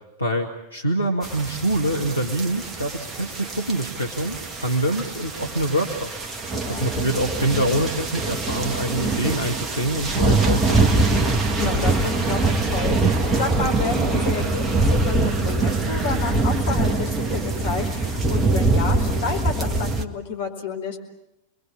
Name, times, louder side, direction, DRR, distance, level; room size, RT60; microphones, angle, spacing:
voice 1, 0.2-6.1 6.7-11.1, right 1 dB, 85° left, 1 dB, 2.0 m, -25 dB
sound 1, 1.2-20.0, right 3 dB, 20° right, 1.8 m, -23 dB
voice 2, 6.5-6.9 11.6-21.0, left 4 dB, 55° left, 3 dB, 4.8 m, -30 dB
29.0 x 22.0 x 8.5 m, 0.91 s
figure-of-eight pair, 90°, 0 cm